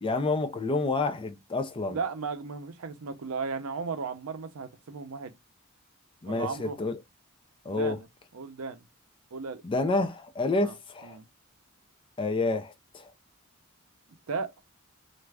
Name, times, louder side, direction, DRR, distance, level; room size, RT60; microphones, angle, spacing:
voice 1, 0.0-2.0 6.2-7.0 7.7-8.0 9.6-11.2 12.2-13.1, left 3 dB, 25° left, 0.3 m, -29 dB
voice 2, 1.9-5.3 6.3-6.8 7.7-8.0 8.3-8.8 9.3-9.6 10.6-10.7 11.0-11.2 14.3-14.5, right 5 dB, 70° right, 0.5 m, -35 dB
2.5 x 2.3 x 3.2 m
head